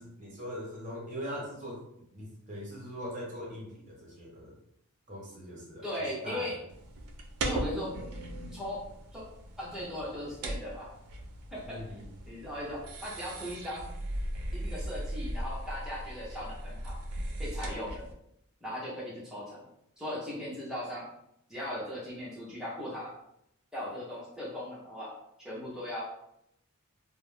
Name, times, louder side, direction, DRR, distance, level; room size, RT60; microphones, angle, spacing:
voice 1, 0.0-1.8 2.1-4.5 5.1-5.9 6.2-6.6 11.7-12.0, equal, 35° right, -3 dB, 0.8 m, -41 dB
voice 2, 5.8-6.6 7.4-8.0 8.5-8.8 9.1-9.2 9.6-10.9 11.5-13.9 14.6-17.0 17.4-18.1 18.6-19.6 20.0-21.1 21.5-23.1 23.7-25.1 25.4-26.1, left 1 dB, 5° right, -7 dB, 0.7 m, -38 dB
sound 1, 6.7-18.1, right 1 dB, 80° right, 0.4 m, -38 dB
2.4 x 2.1 x 3.1 m, 0.76 s
head